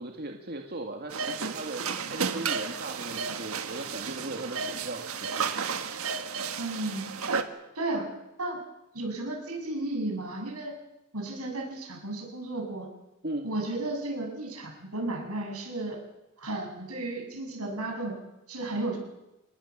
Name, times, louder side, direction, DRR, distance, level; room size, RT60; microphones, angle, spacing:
voice 1, 0.0-1.8 2.1-5.5 13.2-13.5, right 2 dB, 45° right, 2 dB, 2.0 m, -38 dB
sound 1, 1.1-7.4, right 5 dB, 75° right, 1.7 m, -32 dB
voice 2, 6.6-7.1 7.7-8.1 8.4-8.6 8.9-10.7 11.1-12.9 13.4-16.0 16.4-18.2 18.5-19.0, right 2 dB, 90° right, 1 dB, 7.3 m, -33 dB
27.0 x 20.5 x 7.4 m, 1.0 s
head